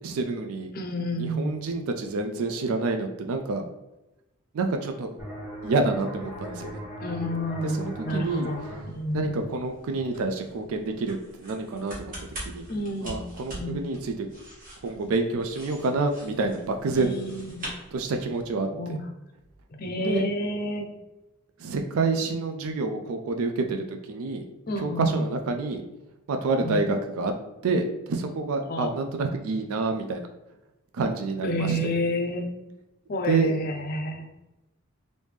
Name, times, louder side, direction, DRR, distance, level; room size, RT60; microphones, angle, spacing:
voice 1, 0.0-0.7 1.1-3.6 4.5-5.1 5.6-6.8 7.6-8.5 9.1-12.1 12.4-12.7 13.0-14.3 14.8-17.2 17.9-18.9 20.0-20.3 21.6-24.4 24.8-25.8 26.3-27.3 27.6-30.3 30.9-31.9 33.2-33.6, right 3 dB, 75° right, 5 dB, 0.4 m, -28 dB
voice 2, 0.7-1.6 7.0-9.4 12.7-13.2 13.5-13.8 17.0-17.6 18.7-19.1 19.8-20.9 24.7-25.3 26.6-26.8 28.7-29.0 31.4-32.5 33.1-34.2, left 1 dB, 45° left, 4 dB, 0.5 m, -30 dB
sound 1, 5.2-10.6, right 1 dB, 5° right, 1.2 m, -40 dB
sound 2, 7.9-18.5, right 1 dB, 40° right, 1.2 m, -44 dB
3.4 x 2.6 x 3.2 m, 0.97 s
head